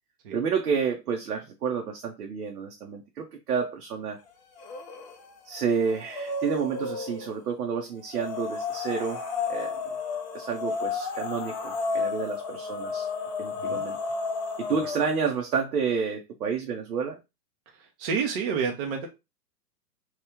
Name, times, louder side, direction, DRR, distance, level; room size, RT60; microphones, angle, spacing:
voice 1, 0.3-4.2 5.4-9.8 10.3-13.1 13.4-14.0 14.6-17.2, right 6 dB, 70° right, 0.8 m, -30 dB
sound 1, 4.6-5.2 5.5-7.3 8.1-15.3, left 4 dB, 30° left, 0.5 m, -32 dB
voice 2, 18.0-19.1, right 6 dB, 35° right, 0.6 m, -28 dB
3.1 x 2.3 x 3.4 m
figure-of-eight pair, 115°, 49 cm